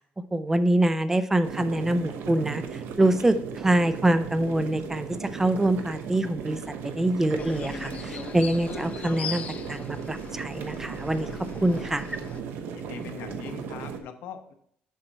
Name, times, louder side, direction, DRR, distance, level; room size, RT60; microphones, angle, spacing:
voice 1, 0.3-9.4 9.7-11.3 11.6-12.2, right 1 dB, 10° right, 11 dB, 0.5 m, -25 dB
sound 1, 1.4-14.0, right 6 dB, 80° right, 0.9 m, -36 dB
sound 2, 7.4-12.4, left 7 dB, 45° left, 0.7 m, -40 dB
voice 2, 12.7-14.5, left 7 dB, 85° left, 7 dB, 1.0 m, -41 dB
7.9 x 5.9 x 4.1 m, 0.68 s
cardioid pair, 140°, 4 cm